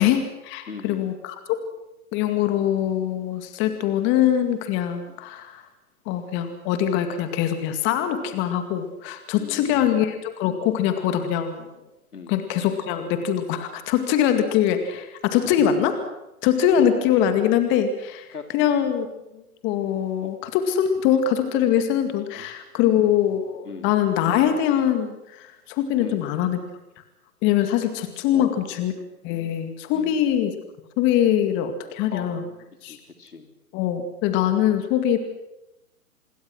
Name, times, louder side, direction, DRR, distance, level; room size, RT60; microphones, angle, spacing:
voice 1, 0.0-1.7 2.1-5.6 6.1-11.7 12.3-16.0 16.4-18.3 18.5-19.1 19.3-26.6 27.4-28.9 29.2-30.5 31.0-32.4 32.8-33.0 33.7-35.2, left 10 dB, 25° left, 8 dB, 2.1 m, -23 dB
voice 2, 0.7-1.2 5.1-5.2 9.3-10.0 12.1-12.4 15.6-15.7 16.8-16.9 18.3-18.5 20.2-20.3 22.4-22.5 22.8-23.1 23.6-23.9 26.0-26.3 28.3-28.9 29.9-30.2 32.1-33.5, left 5 dB, 80° left, 6 dB, 3.5 m, -39 dB
26.5 x 21.5 x 6.3 m, 0.91 s
figure-of-eight pair, 125°, 45 cm